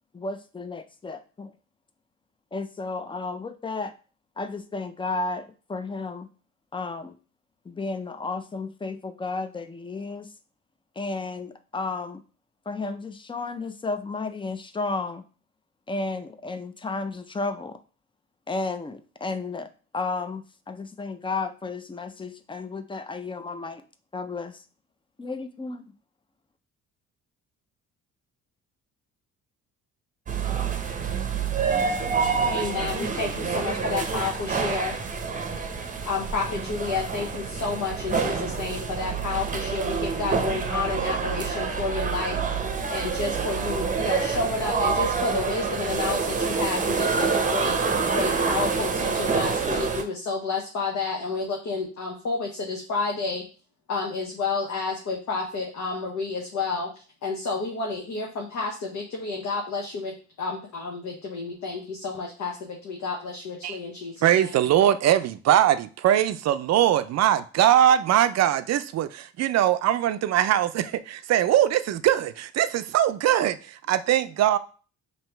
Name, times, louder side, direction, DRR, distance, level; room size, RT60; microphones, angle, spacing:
voice 1, 0.1-1.5 2.5-3.9 4.4-6.3 6.7-7.2 7.7-10.3 11.0-12.2 12.7-15.2 15.9-17.8 18.5-19.7 19.9-23.8 24.1-24.6 25.2-25.9, left 3 dB, 15° left, 0.4 m, -33 dB
sound 1, 30.3-50.0, right 5 dB, 25° right, 0.7 m, -27 dB
voice 2, 32.5-34.9 36.0-42.4 42.9-47.8 48.1-53.4 53.9-56.9 57.2-64.6, left 4 dB, 65° left, 0.9 m, -30 dB
voice 3, 64.2-74.6, right 11 dB, 60° right, 0.4 m, -21 dB
3.0 x 2.8 x 4.4 m
cardioid pair, 90°, 30 cm